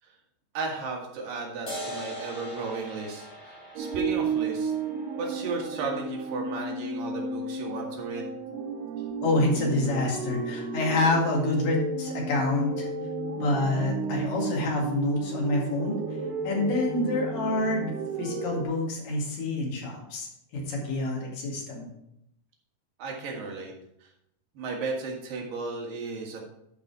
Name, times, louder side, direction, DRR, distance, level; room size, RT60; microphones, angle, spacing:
voice 1, 0.5-4.7 5.2-8.3 23.0-23.7 24.5-26.4, right 4 dB, 65° right, 0 dB, 3.2 m, -34 dB
sound 1, 1.7-8.6, equal, 20° left, 0.8 m, -43 dB
sound 2, 3.8-18.6, right 4 dB, 85° right, 2.8 m, -33 dB
voice 2, 9.2-12.9 13.4-16.0 16.4-20.3 20.5-21.9, left 2 dB, 60° left, -1 dB, 3.6 m, -27 dB
11.0 x 5.4 x 4.7 m, 0.79 s
omnidirectional pair, 4.6 m